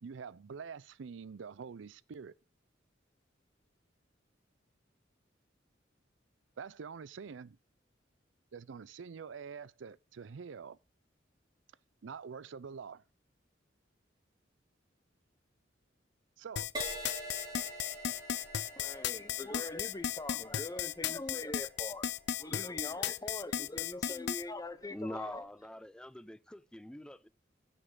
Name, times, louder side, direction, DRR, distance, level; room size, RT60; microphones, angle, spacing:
voice 1, 0.0-2.3 6.6-7.6 8.5-10.8 12.0-13.0 16.4-16.7, right 6 dB, 80° right, 0.5 m, -46 dB
sound 1, 16.6-24.4, left 10 dB, 60° left, 0.5 m, -35 dB
Crash cymbal, 16.7-24.4 25.1-25.4, right 1 dB, 25° right, 2.6 m, -47 dB
voice 2, 18.8-22.1 22.4-25.5, left 2 dB, 20° left, 0.8 m, -42 dB
voice 3, 24.9-27.3, left 1 dB, 5° left, 0.4 m, -44 dB
15.5 x 5.5 x 3.8 m
head